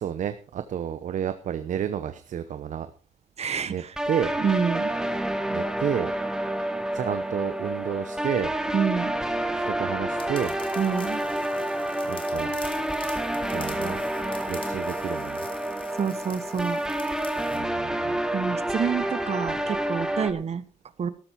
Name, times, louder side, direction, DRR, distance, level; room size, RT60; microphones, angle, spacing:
voice 1, 0.0-2.9 3.7-4.4 5.5-6.1 6.9-8.5 9.5-10.5 12.0-12.5 13.4-14.0 14.5-15.5 17.5-18.2, right 9 dB, 85° right, 11 dB, 0.8 m, -31 dB
voice 2, 3.4-3.7 4.4-4.9 8.7-9.1 10.8-11.2 16.0-16.8 18.3-20.6 21.0-21.1, right 6 dB, 55° right, 14 dB, 1.1 m, -27 dB
sound 1, 4.0-20.3, right 1 dB, 5° right, 1.5 m, -29 dB
sound 2, 10.2-17.6, left 4 dB, 45° left, 2.8 m, -46 dB
13.0 x 12.5 x 4.5 m, 0.41 s
cardioid pair, 95°, 13 cm